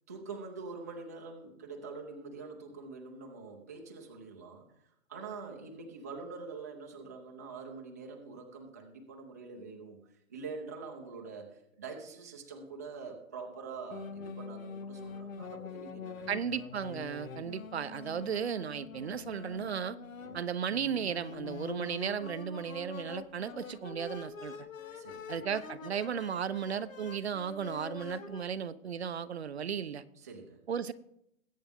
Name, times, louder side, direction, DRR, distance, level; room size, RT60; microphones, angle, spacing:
voice 1, 0.1-4.6 5.1-10.0 10.3-16.3 20.2-20.4 24.9-25.4 30.2-30.6, right 4 dB, 15° right, 0 dB, 0.7 m, -45 dB
sound 1, 13.9-28.4, left 5 dB, 80° left, 1.6 m, -45 dB
voice 2, 16.3-20.0 20.3-24.7 25.3-30.0 30.7-30.9, right 7 dB, 55° right, 15 dB, 0.7 m, -35 dB
21.0 x 8.7 x 3.6 m, 0.78 s
hypercardioid pair, 175°, 40 cm